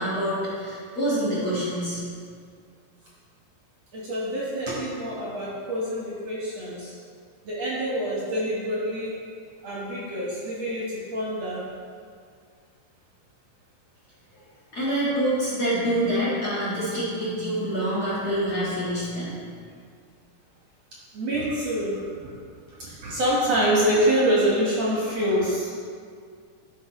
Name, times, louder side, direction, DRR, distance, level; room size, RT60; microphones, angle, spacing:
voice 1, 0.0-2.0 14.3-14.4 14.7-19.3, right 1 dB, 45° left, -10 dB, 1.8 m, -26 dB
voice 2, 3.9-6.9 7.4-9.1 9.6-11.6 21.1-22.3 22.7-25.7, equal, 60° right, -6 dB, 1.7 m, -26 dB
13.5 x 5.7 x 3.0 m, 2.1 s
omnidirectional pair, 4.6 m